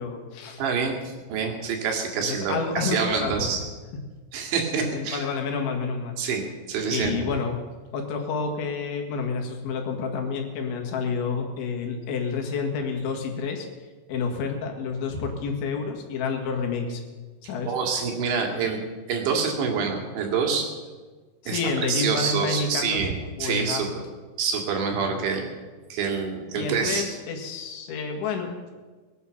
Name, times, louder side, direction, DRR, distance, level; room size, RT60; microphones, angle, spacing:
voice 1, 0.0-0.6 2.2-3.5 3.9-4.0 4.8-6.2 6.9-7.6 7.9-13.7 14.1-17.0 17.4-17.7 18.5-18.8 21.4-23.1 23.4-24.1 25.1-25.2 26.5-28.7, left 5 dB, 70° left, 2 dB, 4.0 m, -29 dB
voice 2, 0.6-3.6 4.3-5.2 6.2-7.3 17.7-18.8 19.1-20.7 21.5-21.6 21.9-23.9 24.4-25.5 25.9-27.0, right 5 dB, 70° right, 2 dB, 4.3 m, -26 dB
21.5 x 9.5 x 7.0 m, 1.4 s
omnidirectional pair, 5.7 m